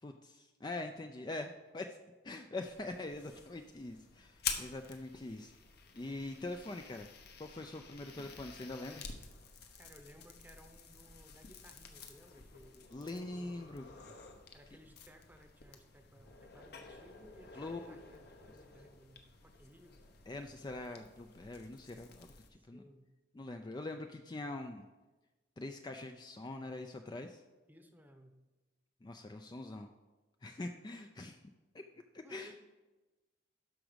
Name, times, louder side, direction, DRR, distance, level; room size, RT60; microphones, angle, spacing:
voice 1, 0.0-2.0 2.2-5.5 5.9-7.1 7.4-9.0 12.9-13.9 17.6-18.0 20.3-22.8 23.3-24.8 25.6-27.4 29.0-29.9 30.4-31.4 31.7-32.5, left 2 dB, 20° left, 5 dB, 0.4 m, -43 dB
sound 1, 2.6-22.5, left 6 dB, 55° left, 1.0 m, -49 dB
voice 2, 9.8-14.1 14.5-20.1 22.5-23.1 27.7-28.4 32.2-32.6, equal, 10° right, 6 dB, 0.8 m, -60 dB
12.5 x 4.9 x 5.1 m, 1.2 s
head